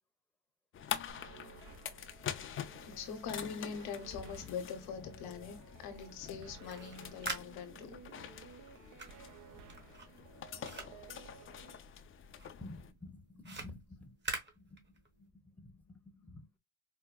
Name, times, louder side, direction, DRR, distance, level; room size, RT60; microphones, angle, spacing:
sound 1, 0.7-12.9, left 9 dB, 35° left, 0.5 m, -46 dB
sound 2, 1.1-11.8, right 7 dB, 60° right, 0.7 m, -56 dB
voice 1, 2.8-8.0, left 6 dB, 75° left, 1.0 m, -43 dB
sound 3, 6.6-12.0 12.3-15.3, right 3 dB, 30° right, 1.1 m, -46 dB
voice 2, 12.6-14.2 14.6-14.8 15.2-16.4, left 2 dB, 5° left, 0.8 m, -51 dB
4.6 x 2.1 x 2.2 m
cardioid pair, 105°, 37 cm